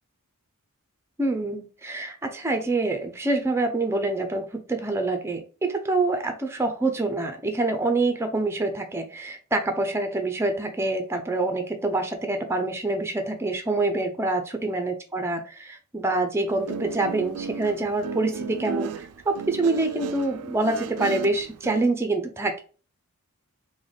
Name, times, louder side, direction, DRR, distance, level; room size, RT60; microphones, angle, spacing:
voice 1, 1.2-22.6, right 2 dB, 10° right, 6 dB, 0.4 m, -26 dB
Guitar, 16.5-21.8, right 6 dB, 75° right, 0.3 m, -34 dB
3.2 x 2.1 x 3.9 m, 0.37 s
head